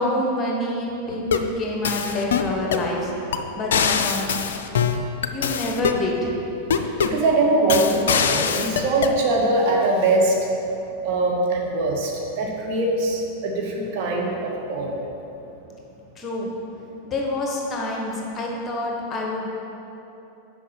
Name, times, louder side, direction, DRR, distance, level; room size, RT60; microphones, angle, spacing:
voice 1, 0.0-4.3 5.3-6.4 16.2-16.5 17.0-19.4, left 1 dB, 20° left, -2 dB, 1.4 m, -27 dB
sound 1, 1.1-1.5 1.8-2.9 3.3-3.4 3.7-6.0 6.7-7.2 7.7-9.2, left 7 dB, 60° left, 0.4 m, -23 dB
voice 2, 7.0-10.5 11.0-15.0, right 2 dB, 45° right, -1 dB, 1.1 m, -22 dB
6.3 x 5.2 x 5.8 m, 2.9 s
figure-of-eight pair, 90°, 0 cm